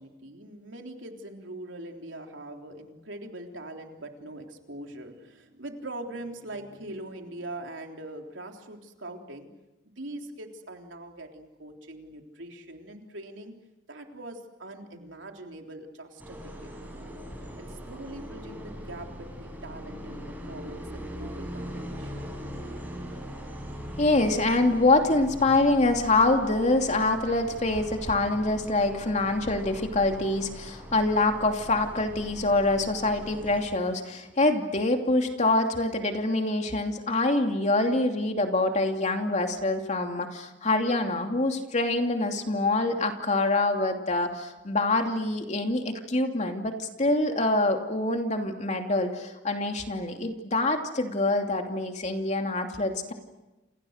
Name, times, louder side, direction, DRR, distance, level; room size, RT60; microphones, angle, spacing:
voice 1, 0.0-9.5 9.8-13.5 13.9-17.1 17.6-20.2 20.5-20.9 21.1-22.3, right 1 dB, 80° right, 3 dB, 3.6 m, -42 dB
sound 1, 16.2-33.6, equal, 10° right, 7.3 m, -41 dB
voice 2, 24.0-53.1, left 2 dB, 40° left, 4 dB, 2.8 m, -25 dB
29.0 x 29.0 x 6.6 m, 1.1 s
head